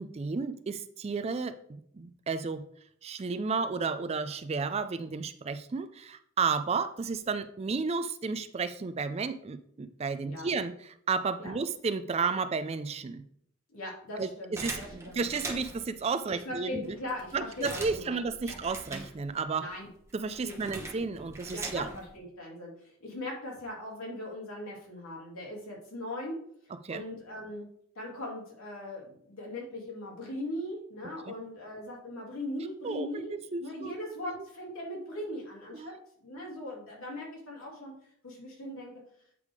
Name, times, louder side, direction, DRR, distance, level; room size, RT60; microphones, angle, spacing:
voice 1, 0.0-2.6 3.0-13.2 14.2-14.3 14.6-17.0 17.3-19.7 20.1-21.9 26.8-27.0 31.3-31.4 32.8-33.9 35.7-35.9, right 4 dB, 30° right, 11 dB, 0.3 m, -32 dB
voice 2, 13.7-15.2 16.3-18.6 19.6-19.9 20.4-20.8 21.5-26.3 26.9-27.7 27.9-35.9 36.2-37.9 38.2-38.9, left 1 dB, 80° left, -3 dB, 2.7 m, -40 dB
sound 1, 14.6-15.9 16.5-16.6 16.8-19.5 19.8-22.2, right 2 dB, 15° right, 1.0 m, -42 dB
8.3 x 3.4 x 4.8 m, 0.66 s
head